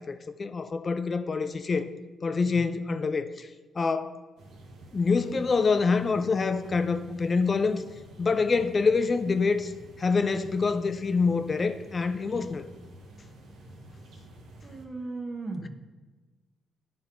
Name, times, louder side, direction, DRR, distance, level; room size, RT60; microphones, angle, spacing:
voice 1, 0.0-1.9 2.2-3.5 3.8-4.2 4.9-7.8 8.2-9.7 10.0-12.7, left 4 dB, 35° left, 0.4 m, -26 dB
sound 1, 4.4-14.9, right 1 dB, 75° right, 1.0 m, -49 dB
voice 2, 14.6-15.7, right 3 dB, 35° right, 1.0 m, -36 dB
9.3 x 3.8 x 4.4 m
cardioid pair, 90°, 0 cm